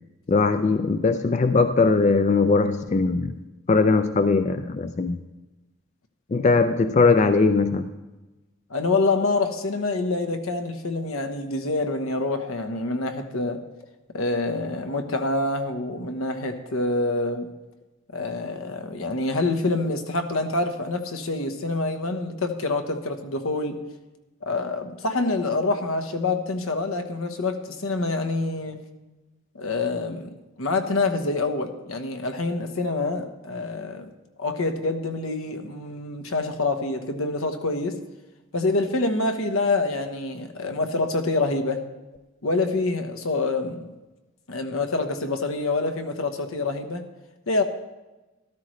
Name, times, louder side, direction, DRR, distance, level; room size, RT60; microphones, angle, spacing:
voice 1, 0.3-3.4 3.7-5.2 6.3-7.9, left 3 dB, 35° left, 9 dB, 0.3 m, -20 dB
voice 2, 8.7-13.6 14.1-17.5 18.1-23.8 24.4-28.8 29.5-34.1 34.4-38.0 38.5-41.8 42.4-43.9 44.5-47.1 47.5-47.6, left 3 dB, 80° left, 7 dB, 1.1 m, -26 dB
13.0 x 13.0 x 3.2 m, 1.1 s
head